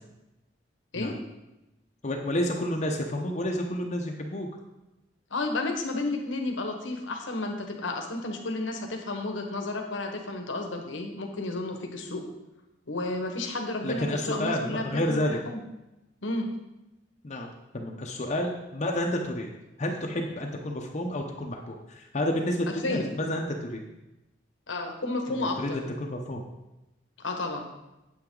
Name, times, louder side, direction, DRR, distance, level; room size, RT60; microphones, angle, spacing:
voice 1, 2.0-4.5 13.8-15.4 17.2-19.5 19.8-23.8 25.3-26.4, left 1 dB, 40° left, 1 dB, 0.8 m, -30 dB
voice 2, 5.3-12.2 12.9-15.6 16.2-16.5 22.8-23.1 24.7-25.8 27.2-27.7, left 2 dB, 90° left, 3 dB, 1.3 m, -32 dB
8.8 x 8.2 x 3.9 m, 0.98 s
head